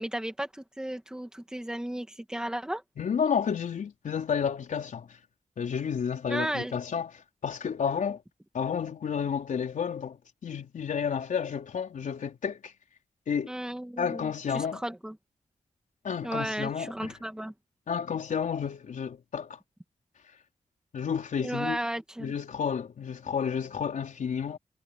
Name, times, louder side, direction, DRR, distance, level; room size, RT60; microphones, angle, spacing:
voice 1, 0.0-2.8 6.3-6.8 13.5-15.2 16.2-17.5 21.4-22.3, right 1 dB, 5° right, 2.2 m, -34 dB
voice 2, 3.0-5.1 5.6-7.1 7.4-8.2 8.5-10.2 10.4-12.7 13.3-13.5 14.0-14.8 16.0-17.1 17.9-19.6 20.9-21.8 22.2-24.6, left 7 dB, 85° left, 4.4 m, -31 dB
wide cardioid pair, 170°, 13 cm